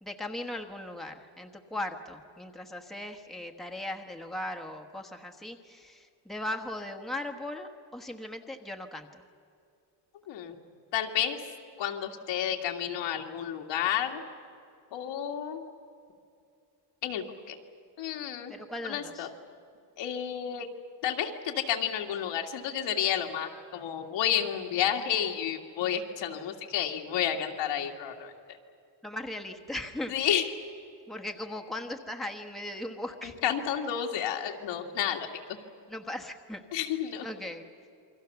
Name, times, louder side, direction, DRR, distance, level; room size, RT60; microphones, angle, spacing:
voice 1, 0.0-9.2 18.5-19.3 29.0-30.1 31.1-33.4 35.9-36.6 37.2-37.6, left 1 dB, ahead, 3 dB, 1.3 m, -38 dB
voice 2, 10.3-10.6 10.9-11.4 11.8-14.2 14.9-15.6 17.0-17.6 18.0-18.5 18.8-19.3 20.0-20.7 21.0-28.3 30.1-30.5 33.2-35.3 36.7-37.3, left 9 dB, 90° left, 2 dB, 2.5 m, -31 dB
28.0 x 24.0 x 7.0 m, 2.5 s
cardioid pair, 160°, 44 cm